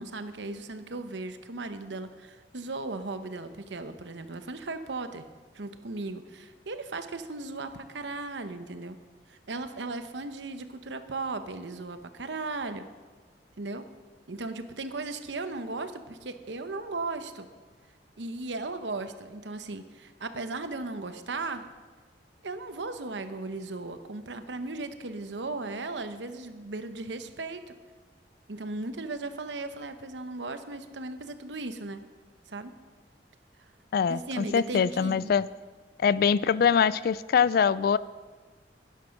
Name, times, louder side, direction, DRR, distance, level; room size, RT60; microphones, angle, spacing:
voice 1, 0.0-5.2 5.5-9.0 9.3-12.9 13.6-13.8 14.3-17.5 18.2-21.6 22.4-27.6 28.5-32.0 32.5-32.7 34.1-35.3, right 3 dB, 85° right, 9 dB, 1.0 m, -36 dB
voice 2, 33.9-35.4 36.0-38.0, left 7 dB, 60° left, 18 dB, 0.3 m, -23 dB
11.5 x 10.5 x 5.9 m, 1.4 s
head